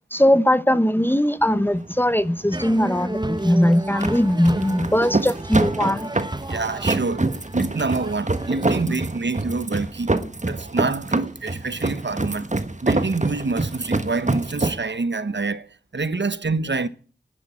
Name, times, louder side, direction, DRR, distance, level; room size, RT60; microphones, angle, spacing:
voice 1, 0.1-6.1 8.9-9.0, equal, 10° left, 0.8 m, -20 dB
sound 1, 1.4-14.8, right 2 dB, 40° right, 1.3 m, -26 dB
sound 2, 2.5-8.8, right 1 dB, 25° right, 0.8 m, -33 dB
voice 2, 6.5-12.5 12.8-16.9, right 3 dB, 80° right, 0.9 m, -27 dB
11.0 x 10.5 x 9.6 m
wide cardioid pair, 50°, 18 cm